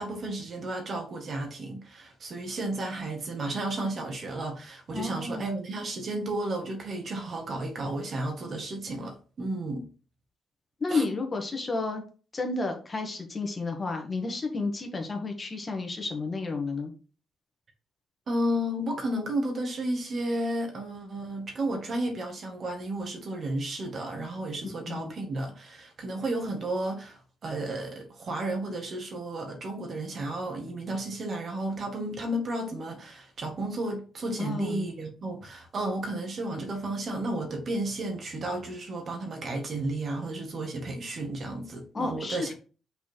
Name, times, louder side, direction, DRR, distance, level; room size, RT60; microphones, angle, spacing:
voice 1, 0.0-9.9 10.9-11.0 18.3-42.5, right 1 dB, 50° right, 1.8 m, -33 dB
voice 2, 4.9-5.5 10.8-12.0 12.3-16.9 24.6-25.1 34.4-34.9 41.9-42.5, left 3 dB, 30° left, 1.6 m, -31 dB
5.7 x 4.3 x 4.5 m
cardioid pair, 90°, 0 cm